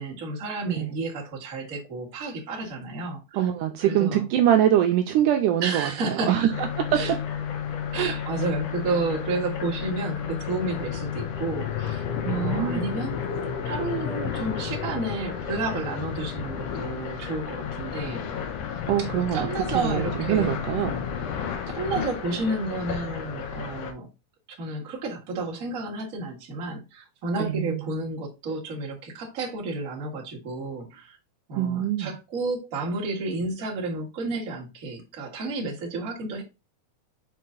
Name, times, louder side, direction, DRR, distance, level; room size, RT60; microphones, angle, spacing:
voice 1, 0.0-3.5 3.8-4.3 5.6-6.5 6.9-7.1 7.9-13.2 13.6-18.3 19.0-20.8 21.7-24.1 24.5-31.2 31.5-36.4, right 2 dB, 35° right, 1.4 m, -31 dB
voice 2, 3.3-6.5 8.0-8.1 12.3-12.9 18.9-19.5 19.7-21.0 27.4-27.8 31.6-32.1, right 11 dB, 80° right, 2.0 m, -24 dB
sound 1, 6.5-23.9, left 7 dB, 80° left, 1.4 m, -32 dB
5.6 x 4.7 x 3.8 m
omnidirectional pair, 4.1 m